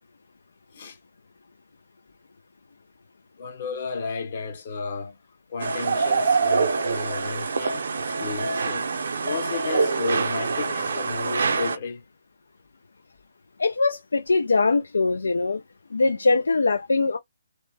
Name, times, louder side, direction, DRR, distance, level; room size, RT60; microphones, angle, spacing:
voice 1, 3.4-5.2 5.5-8.9 9.2-12.0, left 5 dB, 45° left, 1.1 m, -33 dB
sound 1, 5.6-11.8, right 4 dB, 65° right, 0.6 m, -25 dB
voice 2, 13.6-15.6 15.9-17.2, left 3 dB, 80° left, 0.4 m, -22 dB
2.9 x 2.1 x 3.3 m
hypercardioid pair, 150°, 0 cm